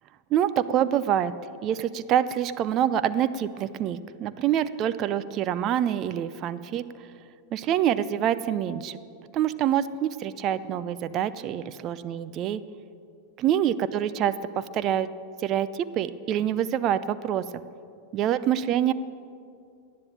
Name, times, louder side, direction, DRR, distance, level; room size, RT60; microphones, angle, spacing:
voice 1, 0.3-1.3 1.6-6.8 7.5-9.0 9.3-12.6 13.4-15.1 15.4-17.5 18.1-18.9, right 10 dB, 35° right, 14 dB, 0.6 m, -26 dB
18.5 x 10.5 x 7.2 m, 2.4 s
figure-of-eight pair, 90°, 0 cm